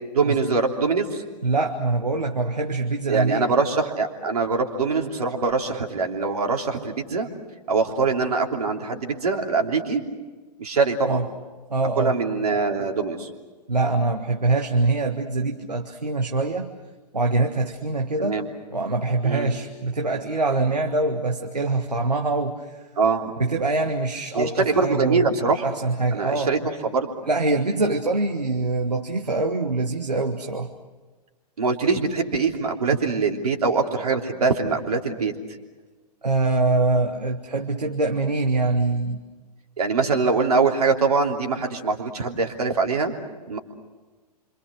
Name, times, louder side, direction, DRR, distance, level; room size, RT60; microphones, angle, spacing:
voice 1, 0.1-1.2 3.1-7.3 7.7-10.1 10.6-11.2 12.0-13.3 18.2-18.5 19.2-19.5 23.0-23.3 24.3-25.6 26.1-27.1 31.6-35.3 39.8-43.1 43.5-43.6, right 4 dB, 70° right, 3 dB, 3.2 m, -23 dB
voice 2, 1.4-3.5 11.0-11.3 11.7-12.1 13.7-16.7 17.1-18.4 18.7-22.8 23.4-25.2 25.6-26.5 27.3-30.7 36.2-39.2, right 3 dB, 85° right, 4 dB, 1.7 m, -24 dB
28.0 x 26.0 x 6.3 m, 1.3 s
figure-of-eight pair, 105°, 21 cm